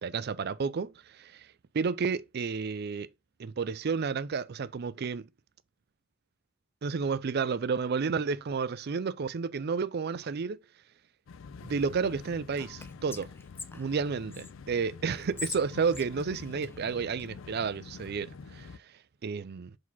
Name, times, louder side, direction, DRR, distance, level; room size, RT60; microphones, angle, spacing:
voice 1, 0.0-1.5 1.7-3.1 3.4-5.3 6.8-10.6 11.6-13.3 13.7-18.7 19.2-19.8, right 5 dB, 55° right, 0.4 m, -31 dB
sound 1, 11.3-18.8, left 5 dB, 75° left, 0.4 m, -47 dB
Whispering, 12.5-14.5 15.1-17.3, left 4 dB, 10° left, 0.4 m, -43 dB
4.8 x 4.2 x 5.5 m
head